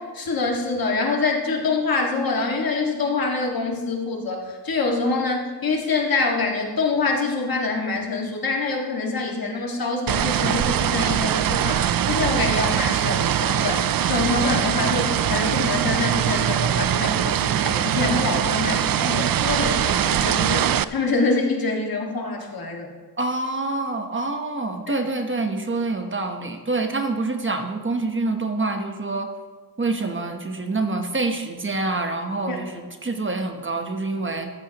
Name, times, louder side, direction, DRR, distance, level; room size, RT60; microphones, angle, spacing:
voice 1, 0.0-22.9 24.9-25.1 32.5-32.6, left 3 dB, 60° left, 1 dB, 1.9 m, -25 dB
sound 1, 10.1-20.8, right 10 dB, 60° right, 0.5 m, -22 dB
voice 2, 23.2-29.3 29.8-34.5, right 3 dB, 30° right, 5 dB, 1.0 m, -26 dB
14.0 x 13.5 x 2.9 m, 1.4 s
wide cardioid pair, 130°, 40 cm